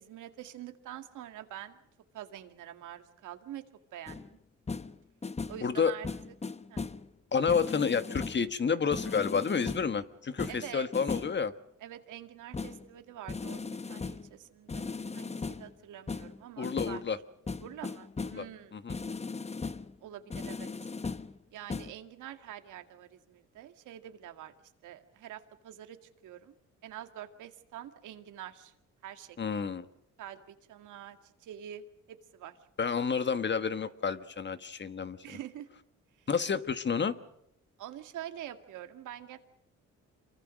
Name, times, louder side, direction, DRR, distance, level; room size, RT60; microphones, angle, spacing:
voice 1, 0.0-1.8 2.1-3.6 3.9-4.4 5.5-6.1 6.7-6.8 10.5-10.9 11.8-14.9 15.1-17.0 17.6-18.8 20.0-20.7 21.5-24.5 24.8-26.0 26.2-26.5 26.8-28.7 29.0-29.6 30.2-32.6 35.2-35.7 37.8-39.4, right 11 dB, 85° right, 7 dB, 2.1 m, -46 dB
sound 1, 4.1-4.3 4.7-5.0 5.2-5.7 6.0-7.1 7.5-8.5 8.9-9.9 10.4-11.4 12.5-12.9 13.3-14.3 14.7-15.7 16.1-17.1 17.5-18.5 18.9-19.9 20.3-21.4 21.7-21.9, left 4 dB, 20° left, 1.0 m, -38 dB
voice 2, 5.6-5.9 7.3-11.5 16.6-17.2 18.3-18.4 18.7-18.9 29.4-29.9 32.8-35.2 36.3-37.1, left 6 dB, 35° left, 11 dB, 1.5 m, -30 dB
27.0 x 23.0 x 6.4 m, 0.80 s
cardioid pair, 90°, 30 cm